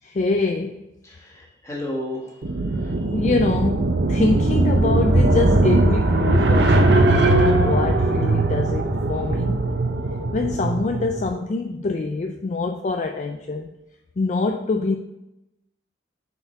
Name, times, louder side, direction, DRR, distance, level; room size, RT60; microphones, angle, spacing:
voice 1, 0.0-0.9 3.1-9.6 10.3-13.7 14.2-14.9, left 3 dB, 40° left, 5 dB, 0.3 m, -25 dB
voice 2, 1.0-3.1, left 1 dB, 15° left, -4 dB, 1.6 m, -34 dB
sound 1, 2.4-11.2, right 2 dB, 60° right, 0.7 m, -19 dB
6.8 x 4.6 x 4.5 m, 0.93 s
head